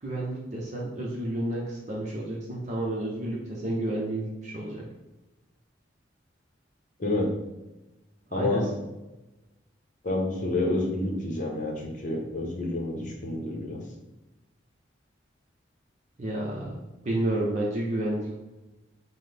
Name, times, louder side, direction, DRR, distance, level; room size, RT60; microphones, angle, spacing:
voice 1, 0.0-4.8 8.3-8.7 16.2-16.8 17.0-18.4, right 1 dB, 40° right, -3 dB, 0.6 m, -30 dB
voice 2, 8.3-8.7 10.0-13.8, left 2 dB, 45° left, 0 dB, 0.8 m, -29 dB
5.7 x 2.1 x 3.3 m, 1.0 s
head